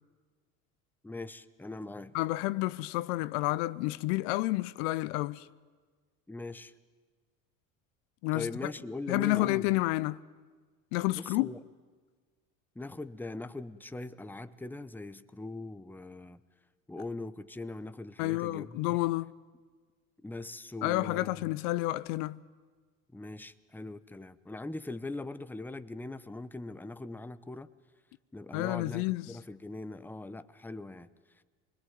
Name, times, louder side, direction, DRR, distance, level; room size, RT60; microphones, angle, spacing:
voice 1, 1.0-2.1 6.3-6.7 8.3-9.7 11.1-11.6 12.7-16.4 16.9-19.0 20.2-21.5 23.1-27.7 28.3-31.1, left 2 dB, 5° left, 0.9 m, -41 dB
voice 2, 2.1-5.5 8.2-8.5 9.1-10.2 10.9-11.5 18.2-19.3 20.8-22.4 28.5-29.3, left 19 dB, 70° left, 0.7 m, -30 dB
24.5 x 21.0 x 9.4 m
hypercardioid pair, 80°, 40 cm